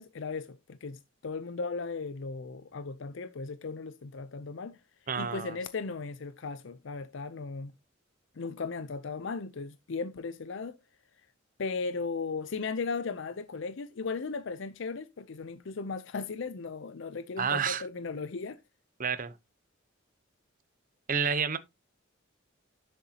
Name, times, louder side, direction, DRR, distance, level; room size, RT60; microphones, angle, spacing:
voice 1, 0.0-4.8 5.2-7.7 8.4-10.8 11.6-18.6, left 4 dB, 60° left, 0.5 m, -36 dB
voice 2, 5.1-5.6 17.4-17.8 19.0-19.3 21.1-21.6, right 6 dB, 40° right, 0.8 m, -29 dB
11.0 x 6.9 x 2.8 m
head